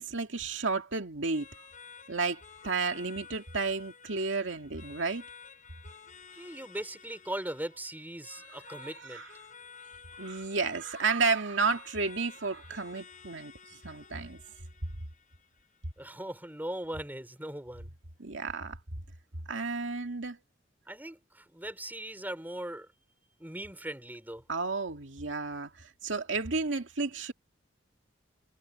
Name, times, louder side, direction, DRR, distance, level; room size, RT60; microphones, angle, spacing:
voice 1, 0.0-1.5 2.1-5.2 8.7-9.3 10.2-13.5 13.8-14.4 18.2-18.8 19.5-20.4 24.5-27.3, right 4 dB, 85° right, 2.2 m, -32 dB
sound 1, 1.3-16.3, left 6 dB, 45° left, 5.5 m, -53 dB
voice 2, 6.3-9.2 16.0-17.9 20.9-22.9 23.4-24.4, right 1 dB, 10° right, 3.8 m, -39 dB
head